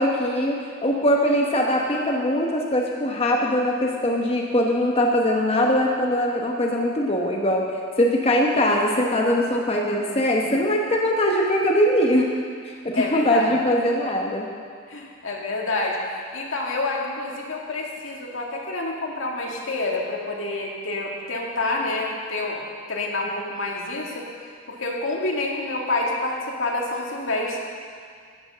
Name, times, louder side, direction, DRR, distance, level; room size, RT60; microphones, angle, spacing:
voice 1, 0.0-7.7 8.0-12.3 12.6-14.5, equal, 30° left, 0 dB, 1.0 m, -21 dB
voice 2, 13.0-13.5 14.9-22.6 22.9-24.3 24.7-27.6, left 2 dB, 85° left, -2 dB, 2.1 m, -28 dB
13.0 x 9.0 x 6.2 m, 2.1 s
head